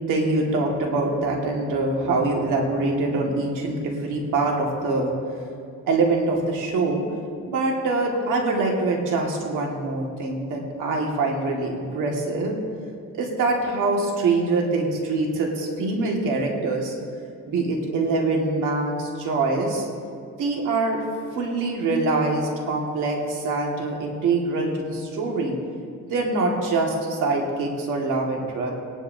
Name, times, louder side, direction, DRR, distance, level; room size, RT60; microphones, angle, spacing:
voice 1, 0.1-5.1 5.9-7.0 7.5-12.6 13.1-16.9 17.5-19.8 20.4-21.0 21.3-25.5 26.1-28.7, right 3 dB, 90° right, 0 dB, 2.0 m, -24 dB
18.5 x 11.0 x 2.7 m, 2.4 s
cardioid pair, 90°, 30 cm